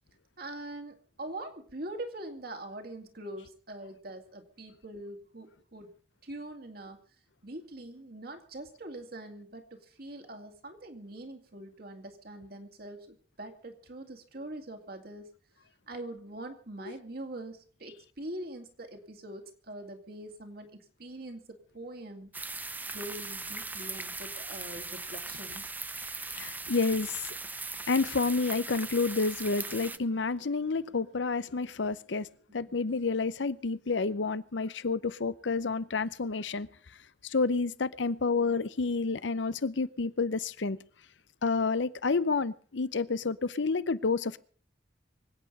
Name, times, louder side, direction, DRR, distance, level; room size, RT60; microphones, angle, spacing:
voice 1, 0.4-5.9 6.2-7.0 7.4-15.3 15.9-22.3 22.9-25.6 32.7-32.8, right 1 dB, 60° right, 2.5 m, -43 dB
sound 1, 22.3-30.0, right 3 dB, 10° right, 0.6 m, -39 dB
voice 2, 26.3-27.2 27.9-32.3 32.5-36.7 37.2-40.8 41.4-44.4, left 4 dB, 85° left, 0.7 m, -29 dB
24.5 x 8.7 x 5.4 m
head